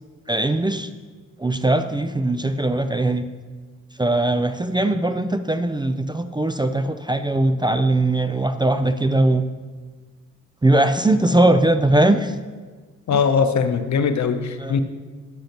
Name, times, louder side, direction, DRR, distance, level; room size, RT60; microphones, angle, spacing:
voice 1, 0.3-0.9 1.4-3.3 4.0-9.5 10.6-12.3 13.1-13.2 14.6-14.8, right 2 dB, 15° right, 10 dB, 0.5 m, -20 dB
voice 2, 13.1-14.8, left 6 dB, 60° left, 8 dB, 0.8 m, -20 dB
10.5 x 7.7 x 3.0 m, 1.4 s
supercardioid pair, 45°, 32 cm